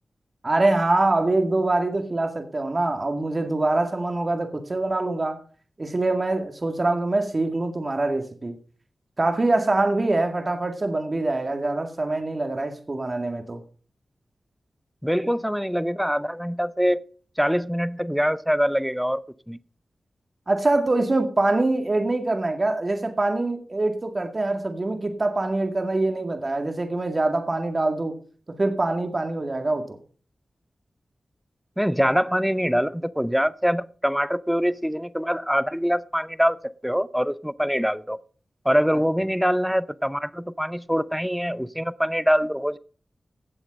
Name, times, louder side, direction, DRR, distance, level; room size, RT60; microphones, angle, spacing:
voice 1, 0.4-5.4 5.8-8.5 9.2-13.6 20.5-28.2 28.6-30.0, right 2 dB, 40° right, 2.1 m, -24 dB
voice 2, 15.0-17.0 17.4-19.2 19.5-19.6 31.8-38.2 38.6-42.8, equal, ahead, 0.7 m, -24 dB
16.5 x 7.2 x 5.3 m
cardioid pair, 55°, 0 cm